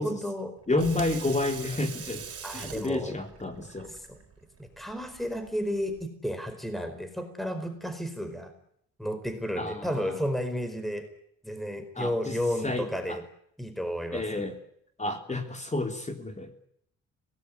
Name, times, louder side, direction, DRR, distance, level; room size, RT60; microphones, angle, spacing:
voice 1, 0.0-0.5 2.4-3.2 3.9-4.2 4.6-8.5 9.0-11.1 11.4-13.2 13.6-14.4, equal, ahead, 8 dB, 4.7 m, -32 dB
Water tap faucet / Sink (filling or washing), 0.6-6.1, right 7 dB, 50° right, 4.8 m, -44 dB
voice 2, 0.7-2.2 2.5-3.9 9.6-10.2 12.0-12.4 12.6-13.2 14.1-14.6 15.0-16.7, left 2 dB, 25° left, 6 dB, 3.6 m, -30 dB
24.5 x 19.0 x 9.5 m, 0.70 s
cardioid pair, 90°, 30 cm